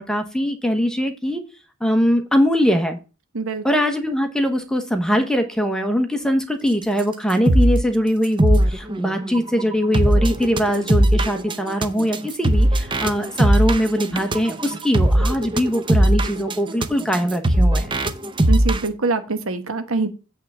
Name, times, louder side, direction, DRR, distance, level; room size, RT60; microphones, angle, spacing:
voice 1, 0.0-1.4 1.8-3.0 3.6-17.9, equal, 5° left, 6 dB, 1.0 m, -21 dB
sound 1, 7.0-7.1 7.3-7.8 8.2-18.9, right 1 dB, 25° right, 0.6 m, -19 dB
voice 2, 18.5-20.1, right 3 dB, 70° right, 9 dB, 1.1 m, -24 dB
8.5 x 3.5 x 6.7 m, 0.32 s
head